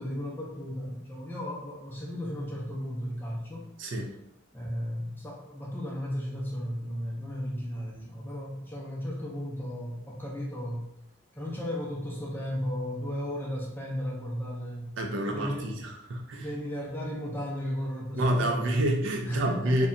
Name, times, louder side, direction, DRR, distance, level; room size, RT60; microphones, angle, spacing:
voice 1, 0.0-3.7 4.5-10.9 11.3-14.9 15.3-15.7 16.3-18.9 19.2-19.9, equal, 10° left, -4 dB, 0.5 m, -35 dB
voice 2, 3.8-4.1 15.0-16.5 18.2-19.9, right 1 dB, 60° right, 2 dB, 0.4 m, -28 dB
2.7 x 2.1 x 2.5 m, 0.79 s
head